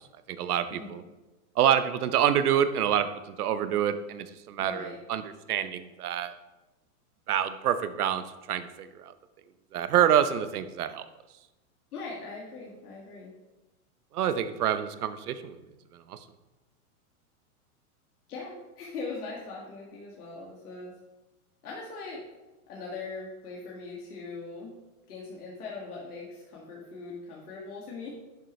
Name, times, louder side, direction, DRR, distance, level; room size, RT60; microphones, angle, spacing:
voice 1, 0.3-1.0 1.6-5.2 5.5-6.3 7.3-9.1 9.7-11.0 14.1-15.6 16.1-16.2, right 9 dB, 85° right, 12 dB, 0.9 m, -27 dB
voice 2, 4.6-5.0 11.9-13.3 18.3-21.0 21.6-22.2 22.7-24.8 25.1-28.1, left 3 dB, 85° left, -4 dB, 2.2 m, -40 dB
11.0 x 6.7 x 3.2 m, 1.1 s
supercardioid pair, 165°, 44 cm